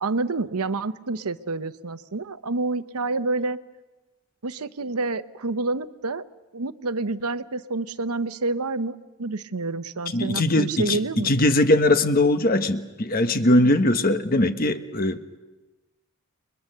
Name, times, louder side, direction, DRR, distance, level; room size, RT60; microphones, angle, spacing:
voice 1, 0.0-3.6 4.4-6.2 6.5-11.3, right 3 dB, 85° right, 13 dB, 0.9 m, -28 dB
voice 2, 10.1-11.0 11.2-15.4, left 1 dB, 40° left, 9 dB, 1.2 m, -20 dB
30.0 x 22.0 x 6.7 m, 1.2 s
head